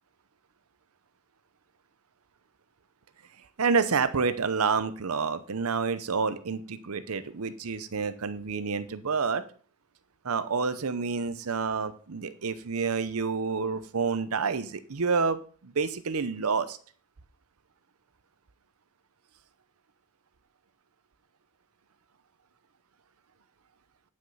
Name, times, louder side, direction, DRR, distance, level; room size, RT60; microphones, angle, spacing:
voice 1, 3.6-9.4 10.2-16.8, right 5 dB, 70° right, 12 dB, 0.7 m, -28 dB
10.0 x 6.2 x 5.6 m, 0.42 s
head